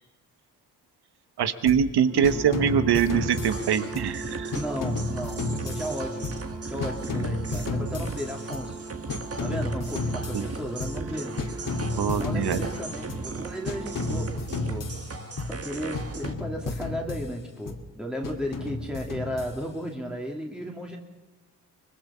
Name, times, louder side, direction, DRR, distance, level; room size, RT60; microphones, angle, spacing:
voice 1, 1.4-4.6 10.3-10.4 12.0-12.7, right 8 dB, 70° right, 11 dB, 1.4 m, -24 dB
sound 1, 1.7-2.0 2.2-4.2 4.5-6.6 6.8-8.8 9.1-11.1 11.4-13.3 13.7-15.7 15.9-17.8 18.2-19.9, left 2 dB, 50° left, 2.7 m, -32 dB
sound 2, 2.0-14.3, right 4 dB, 90° right, 6.1 m, -39 dB
sound 3, 3.1-16.3, right 3 dB, 35° right, 2.0 m, -39 dB
voice 2, 4.5-6.3 6.7-8.8 9.4-11.3 12.2-14.9 15.5-21.0, equal, ahead, 0 dB, 2.7 m, -34 dB
24.5 x 20.5 x 5.7 m, 1.2 s
cardioid pair, 60°, 40 cm